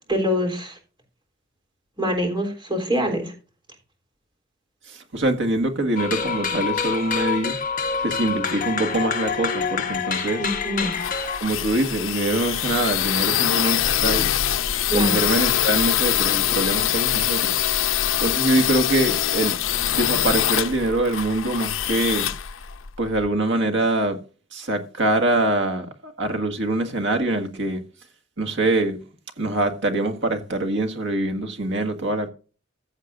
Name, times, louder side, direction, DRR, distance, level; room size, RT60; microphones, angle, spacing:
voice 1, 0.1-0.8 2.0-3.3 10.4-11.0 14.9-15.2, equal, 25° right, 3.6 m, -24 dB
voice 2, 4.9-7.6 8.0-10.4 11.4-14.3 14.9-17.6 18.2-19.6 20.0-22.3 23.0-24.2 24.5-27.8 28.4-29.0 29.4-32.3, right 2 dB, 65° right, 1.8 m, -24 dB
sound 1, 6.0-11.4, left 6 dB, 45° left, 1.3 m, -26 dB
sound 2, 10.5-23.3, left 11 dB, 75° left, 0.7 m, -24 dB
15.0 x 7.5 x 2.6 m
head